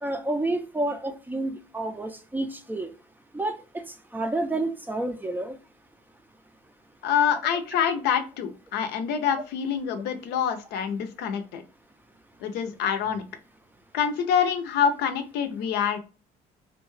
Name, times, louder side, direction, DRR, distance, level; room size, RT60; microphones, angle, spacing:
voice 1, 0.0-2.9 3.3-5.6, right 2 dB, 10° right, 0.4 m, -30 dB
voice 2, 7.0-11.6 12.4-13.2 13.9-16.0, left 8 dB, 80° left, 0.5 m, -26 dB
2.4 x 2.2 x 3.0 m
cardioid pair, 110°, 17 cm